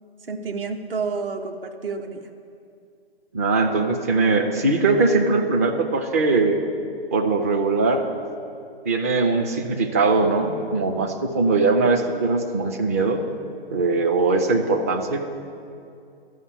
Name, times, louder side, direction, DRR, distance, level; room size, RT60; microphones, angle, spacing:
voice 1, 0.3-2.3, right 4 dB, 65° right, 5 dB, 1.1 m, -29 dB
voice 2, 3.3-6.6 7.1-8.0 8.9-13.2 13.7-15.2, right 3 dB, 15° right, 4 dB, 0.4 m, -21 dB
12.0 x 5.5 x 8.1 m, 2.4 s
figure-of-eight pair, 130°, 31 cm